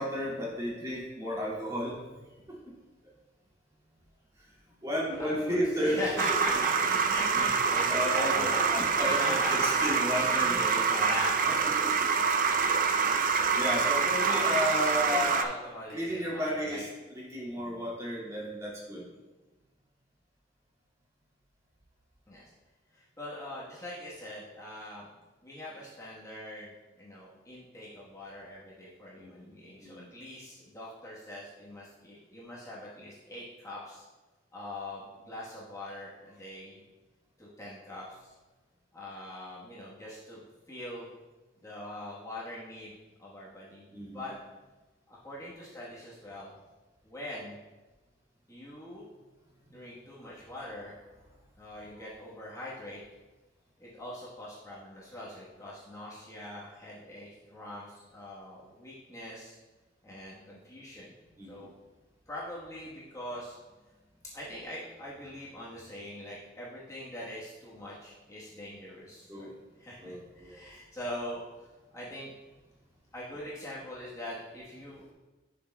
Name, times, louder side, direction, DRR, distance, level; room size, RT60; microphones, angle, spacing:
voice 1, 0.0-2.0 2.5-2.6 4.8-6.0 6.3-6.4 7.3-7.5 7.8-10.8 11.8-11.9 12.3-12.4 13.5-15.4 15.9-16.9 17.1-19.0 29.2-29.5 29.8-30.1 43.9-44.2 61.4-61.7 69.3-69.5 70.0-70.6, equal, 20° right, -6 dB, 2.1 m, -33 dB
voice 2, 5.2-10.0 10.3-11.4 14.2-16.8 17.5-17.9 22.3-22.5 22.9-25.1 25.4-34.1 34.5-36.8 37.4-38.3 38.9-41.1 41.6-44.3 45.1-46.5 47.0-47.6 48.5-49.1 49.7-51.0 51.6-53.0 53.8-59.6 60.0-61.1 61.4-61.7 62.3-63.6 64.3-71.4 71.9-72.3 73.1-75.1, left 1 dB, 15° left, -7 dB, 1.2 m, -42 dB
sound 1, 6.2-15.4, right 5 dB, 50° right, 0.5 m, -26 dB
11.0 x 5.8 x 2.2 m, 1.2 s
head